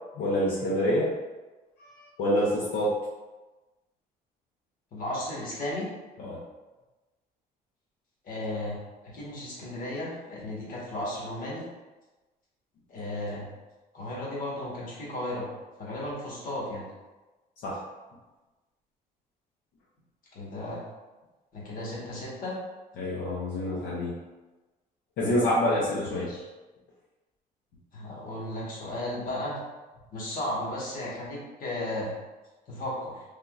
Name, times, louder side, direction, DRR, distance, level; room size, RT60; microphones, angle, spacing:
voice 1, 0.2-1.1 1.8-2.9 6.2-6.4 17.6-17.8 23.0-24.2 25.2-26.3, equal, 85° left, -7 dB, 0.7 m, -27 dB
voice 2, 4.9-5.9 8.2-8.8 9.0-11.6 12.9-13.5 13.9-15.5 15.8-16.8 20.3-20.8 21.5-22.6 26.1-26.4 27.9-29.6 30.1-32.1 32.7-33.2, left 1 dB, 55° left, -6 dB, 1.3 m, -34 dB
3.5 x 2.7 x 2.4 m, 1.2 s
cardioid pair, 110°, 17 cm